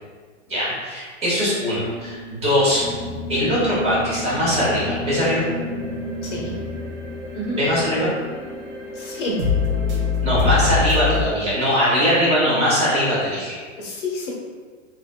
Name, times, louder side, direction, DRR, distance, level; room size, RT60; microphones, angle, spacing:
voice 1, 0.5-2.8 3.3-5.4 7.5-8.1 10.2-13.6, equal, 15° right, -9 dB, 1.4 m, -21 dB
sound 1, 1.7-9.5, equal, 85° left, 1.0 m, -33 dB
sound 2, 4.4-11.2, left 5 dB, 65° right, 1.0 m, -26 dB
voice 2, 6.2-6.5 7.3-7.6 8.9-9.4 13.8-14.3, left 1 dB, 70° left, -3 dB, 1.1 m, -28 dB
3.9 x 2.9 x 2.2 m, 1.5 s
hypercardioid pair, 140°, 38 cm